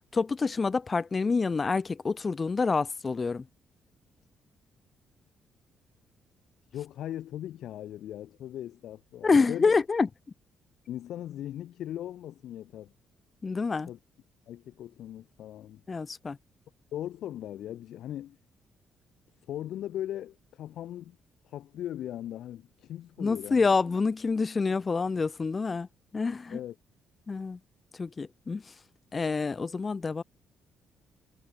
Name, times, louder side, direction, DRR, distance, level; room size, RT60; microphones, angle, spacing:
voice 1, 0.1-3.5 9.2-10.1 13.4-13.9 15.9-16.4 23.2-25.9 26.1-26.6 27.3-27.6 28.0-28.6 29.1-30.2, left 4 dB, 30° left, 0.3 m, -27 dB
voice 2, 6.7-9.8 10.9-12.9 13.9-14.0 14.5-15.8 16.9-18.4 19.5-21.2 21.4-23.7 26.5-26.7, left 12 dB, 75° left, 4.2 m, -39 dB
cardioid pair, 90°, 0 cm